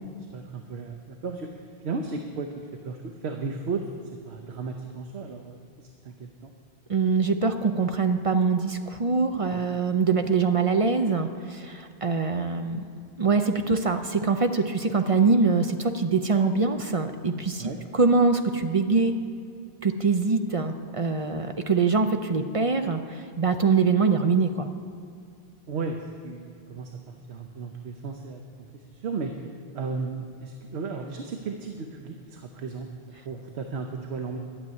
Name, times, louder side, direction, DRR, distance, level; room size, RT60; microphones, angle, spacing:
voice 1, 0.2-3.9 4.2-6.5 9.5-9.6 17.6-17.8 25.7-29.5 29.7-34.4, right 4 dB, 90° right, 4 dB, 1.1 m, -35 dB
voice 2, 6.9-12.8 13.2-19.2 19.8-24.7, right 4 dB, 40° right, 7 dB, 0.5 m, -24 dB
12.0 x 7.0 x 9.4 m, 2.4 s
omnidirectional pair, 1.1 m